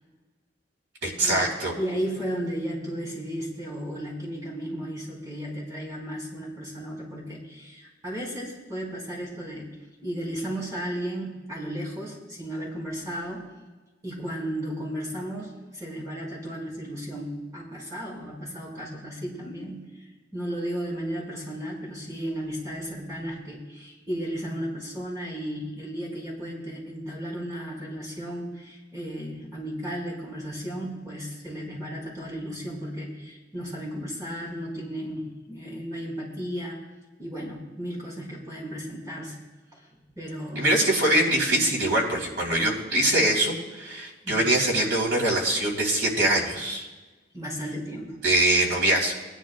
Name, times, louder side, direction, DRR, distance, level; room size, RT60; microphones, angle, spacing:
voice 1, 1.0-1.7 40.5-46.9 48.2-49.1, right 1 dB, 85° right, -2 dB, 3.4 m, -23 dB
voice 2, 1.8-9.7 10.0-13.5 14.0-36.8 37.2-39.4 39.7-39.8 40.2-40.7 44.2-44.4 47.3-48.2, equal, 20° right, -4 dB, 4.6 m, -34 dB
21.0 x 11.5 x 2.3 m, 1.2 s
head